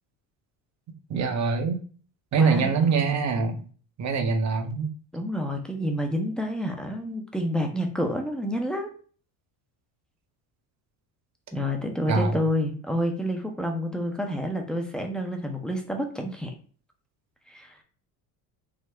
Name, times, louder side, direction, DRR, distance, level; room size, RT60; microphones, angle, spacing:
voice 1, 1.1-1.8 2.3-3.6 4.0-4.9 12.1-12.4, right 5 dB, 40° right, 6 dB, 0.7 m, -24 dB
voice 2, 2.4-2.7 5.1-8.9 11.5-16.5 17.5-17.8, equal, ahead, 3 dB, 0.5 m, -29 dB
3.7 x 2.0 x 3.2 m, 0.42 s
supercardioid pair, 85°, 45 cm